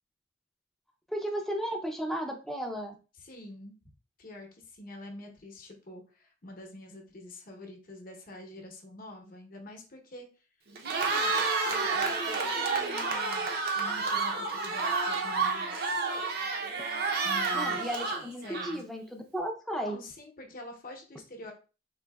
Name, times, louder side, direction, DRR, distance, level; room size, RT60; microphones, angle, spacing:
voice 1, 1.1-2.9 17.5-20.0, equal, ahead, 3 dB, 0.4 m, -34 dB
voice 2, 3.2-3.8 4.2-10.3 11.0-16.1 17.2-17.9 18.4-18.8 19.9-21.5, left 1 dB, 50° left, 2 dB, 0.8 m, -46 dB
Cheering, 10.7-19.0, right 4 dB, 55° right, 0.6 m, -30 dB
3.9 x 2.6 x 2.3 m, 0.34 s
head